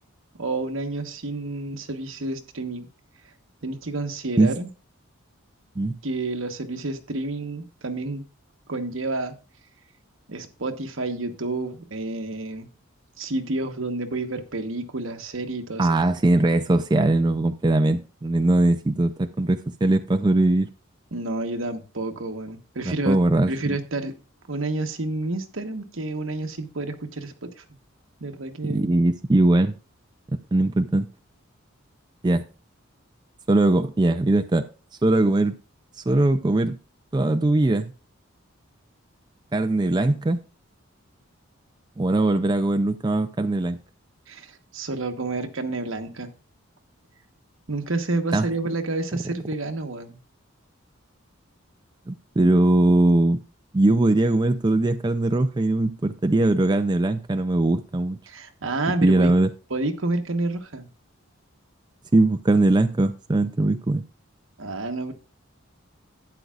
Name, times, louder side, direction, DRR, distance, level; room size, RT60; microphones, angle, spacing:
voice 1, 0.4-2.9 3.6-4.7 6.0-8.2 8.7-9.3 10.3-12.7 13.2-15.9 21.1-23.2 23.5-24.1 24.5-27.6 28.2-28.9 44.3-46.3 47.7-50.2 58.3-59.3 59.7-60.9 64.6-65.1, right 2 dB, 70° right, 6 dB, 1.2 m, -29 dB
voice 2, 15.8-20.7 22.9-23.8 28.6-29.7 30.5-31.1 32.2-32.4 33.5-34.7 35.0-35.5 36.1-36.8 37.1-37.9 39.5-40.4 42.0-43.8 48.3-48.5 52.1-53.4 53.7-58.2 59.0-59.5 62.1-64.0, right 2 dB, 20° right, 8 dB, 0.4 m, -20 dB
12.0 x 9.3 x 2.4 m, 0.35 s
head